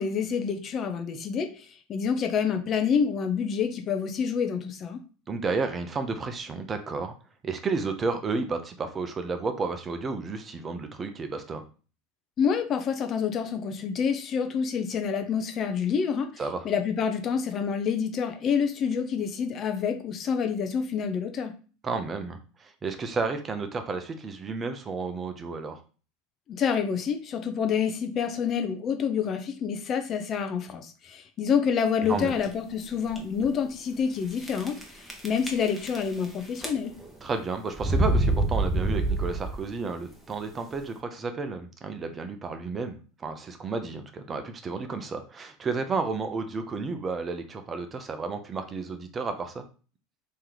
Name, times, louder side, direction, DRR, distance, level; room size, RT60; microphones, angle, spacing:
voice 1, 0.0-1.5 1.9-5.0 12.4-16.3 16.6-21.5 26.5-34.8 35.2-36.9, left 6 dB, 40° left, 6 dB, 0.7 m, -27 dB
voice 2, 5.3-7.1 7.4-11.6 16.4-16.7 21.8-25.8 32.1-32.4 37.2-49.6, right 4 dB, 30° right, 7 dB, 0.7 m, -32 dB
sound 1, 32.0-32.4 33.1-33.2 33.4-33.5 34.4-34.8 35.1-36.2 36.5-37.1 37.8-39.7, right 2 dB, ahead, 1.1 m, -26 dB
3.1 x 2.9 x 3.8 m, 0.37 s
hypercardioid pair, 90°, 0 cm